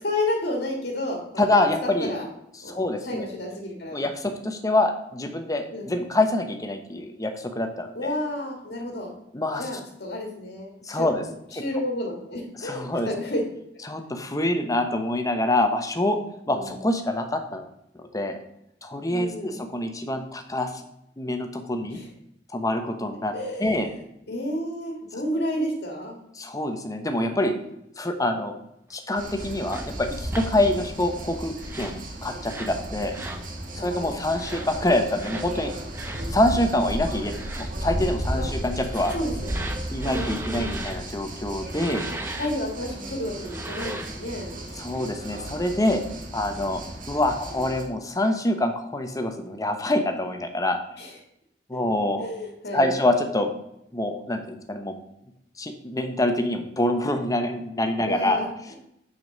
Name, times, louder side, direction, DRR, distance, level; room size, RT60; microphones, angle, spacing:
voice 1, 0.0-1.5 2.0-2.3 2.6-4.0 5.7-5.9 7.9-9.1 9.6-11.1 11.5-13.4 16.5-16.8 19.1-19.6 21.9-22.1 23.3-24.0 24.3-26.2 33.7-34.2 38.3-38.5 39.1-39.7 40.0-40.7 42.3-44.6 51.0-51.1 52.2-52.9 58.0-58.8, left 1 dB, 60° left, 0 dB, 1.8 m, -31 dB
voice 2, 1.4-2.1 2.7-3.3 3.9-8.2 9.3-9.7 10.9-11.2 11.5-11.6 12.6-13.1 13.9-16.2 16.5-17.7 18.0-18.4 18.8-20.7 21.2-22.0 22.5-23.3 23.6-23.9 26.4-27.5 28.0-28.5 28.9-33.2 33.7-35.7 36.3-39.1 39.9-42.0 44.8-46.0 46.3-46.8 47.1-50.8 51.7-52.2 52.7-53.5 53.9-55.0 55.6-58.4, left 1 dB, 20° left, 5 dB, 1.0 m, -25 dB
sound 1, 29.1-47.8, right 1 dB, 50° right, 1.6 m, -34 dB
sound 2, 29.7-29.9 30.3-30.5 31.6-32.0 32.4-32.8 33.1-33.4 34.3-34.7 35.2-35.5 35.9-36.2 37.2-37.7 38.8-41.0 41.7-42.5 43.4-44.2, right 2 dB, 15° right, 0.9 m, -37 dB
6.8 x 5.2 x 6.5 m, 0.79 s
head